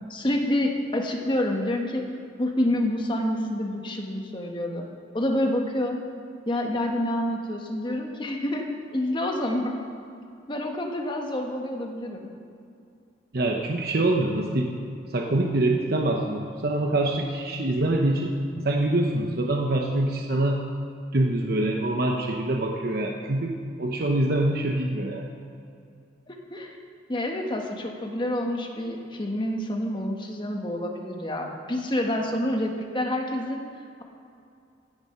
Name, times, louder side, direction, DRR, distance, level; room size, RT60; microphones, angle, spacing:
voice 1, 0.1-2.1 2.4-4.8 5.1-6.0 6.5-9.8 10.5-12.3 26.3-26.8 27.1-33.7, left 1 dB, 25° left, 2 dB, 1.3 m, -28 dB
voice 2, 13.3-14.7 15.1-20.6 21.1-25.3, right 1 dB, 55° right, 1 dB, 0.9 m, -25 dB
15.5 x 6.9 x 5.8 m, 2.5 s
head